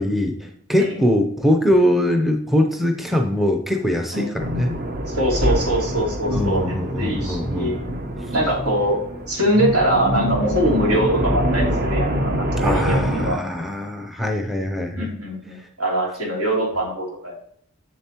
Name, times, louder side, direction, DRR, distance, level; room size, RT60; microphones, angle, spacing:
voice 1, 0.0-4.8 6.3-7.8 12.6-15.1, left 1 dB, ahead, 4 dB, 0.5 m, -22 dB
sound 1, 4.4-13.3, equal, 45° right, 0.7 m, -25 dB
voice 2, 5.1-7.9 8.3-9.0 9.3-13.4 14.9-17.4, right 1 dB, 85° right, -3 dB, 2.9 m, -23 dB
7.2 x 7.0 x 2.9 m, 0.66 s
head